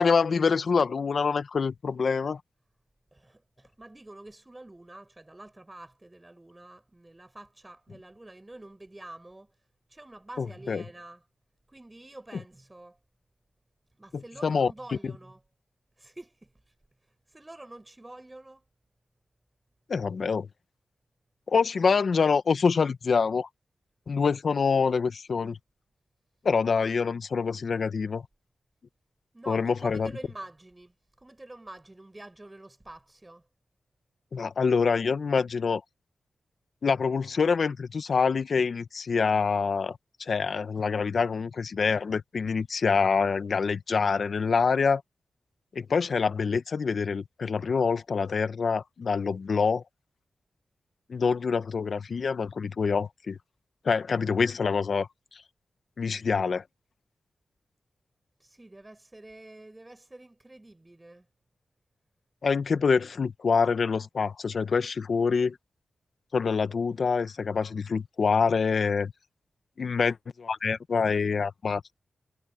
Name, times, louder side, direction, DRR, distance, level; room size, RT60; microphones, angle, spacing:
voice 1, 0.0-2.4 10.4-10.8 14.1-14.7 15.0-15.1 19.9-20.5 21.5-23.5 24.1-25.6 26.4-28.2 29.5-30.1 34.3-35.8 36.8-45.0 45.7-49.8 51.1-53.4 53.8-55.1 56.0-56.6 62.4-65.6 66.3-69.1 69.8-72.0, left 5 dB, 65° left, 1.3 m, -26 dB
voice 2, 3.1-9.5 9.9-11.2 11.7-13.0 14.0-15.4 16.0-16.7 17.3-18.6 29.3-33.4 58.4-61.2, right 2 dB, 20° right, 7.8 m, -47 dB
cardioid pair, 50°, 0 cm